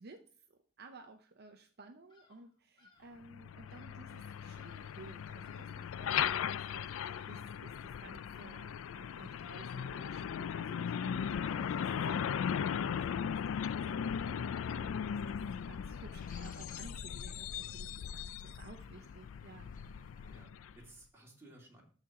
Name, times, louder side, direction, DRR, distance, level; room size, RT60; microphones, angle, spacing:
voice 1, 0.0-15.4 15.7-19.7, right 3 dB, 55° right, 6 dB, 0.7 m, -55 dB
Bird vocalization bird call bird song, 2.1-3.2 3.7-4.1 4.5-5.1 5.4-5.9 6.2-6.7 7.1-7.6 8.3-8.8, left 4 dB, 25° left, 1.8 m, -65 dB
Truck, 3.2-20.9, left 8 dB, 80° left, 0.3 m, -38 dB
sound 1, 4.1-20.5, left 5 dB, 45° left, 0.8 m, -64 dB
voice 2, 12.9-13.3 20.3-21.8, right 1 dB, 15° right, -3 dB, 2.6 m, -57 dB
13.0 x 4.5 x 3.6 m, 0.43 s
head